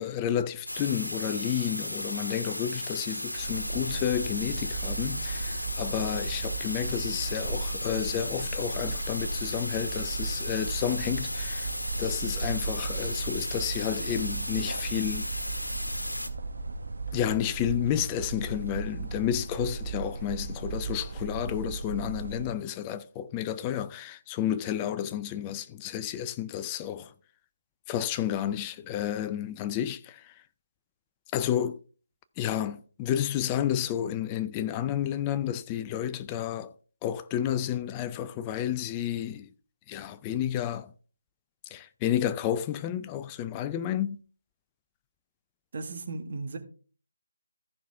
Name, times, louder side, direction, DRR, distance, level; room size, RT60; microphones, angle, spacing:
voice 1, 0.0-11.7 12.0-15.3 17.1-27.1 27.9-30.3 31.3-31.8 32.4-36.7 37.0-39.5 39.9-40.9 41.7-44.2, left 10 dB, 20° left, 0.5 m, -31 dB
sound 1, 0.7-16.3, left 1 dB, 90° left, 1.5 m, -35 dB
sound 2, 3.3-22.5, right 3 dB, 70° right, 1.3 m, -36 dB
voice 2, 45.7-46.6, right 3 dB, 45° right, 1.8 m, -36 dB
14.5 x 5.9 x 3.4 m
figure-of-eight pair, 150°, 0 cm